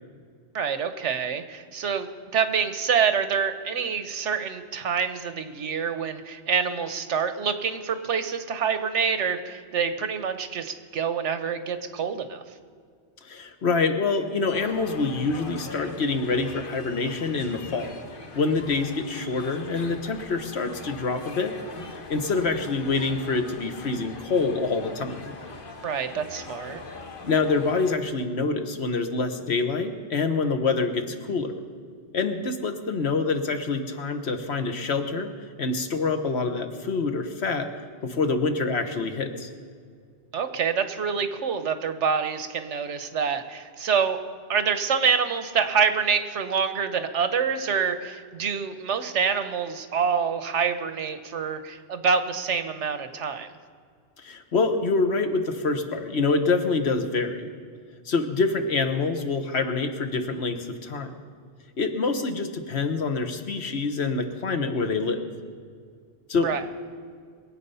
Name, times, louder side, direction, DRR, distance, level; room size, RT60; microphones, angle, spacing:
voice 1, 0.5-2.1 2.3-12.4 25.8-26.8 40.3-44.2 44.5-53.5 66.4-66.6, right 6 dB, 80° right, 9 dB, 1.2 m, -26 dB
voice 2, 13.2-17.9 18.3-21.5 22.1-25.3 27.3-31.5 32.1-35.3 35.6-37.7 38.0-39.5 54.2-57.5 58.0-61.1 61.8-65.2 66.3-66.6, left 4 dB, 65° left, 7 dB, 1.4 m, -26 dB
sound 1, 14.5-28.0, left 3 dB, 50° left, 1.3 m, -41 dB
22.5 x 8.3 x 5.6 m, 2.1 s
omnidirectional pair, 1.2 m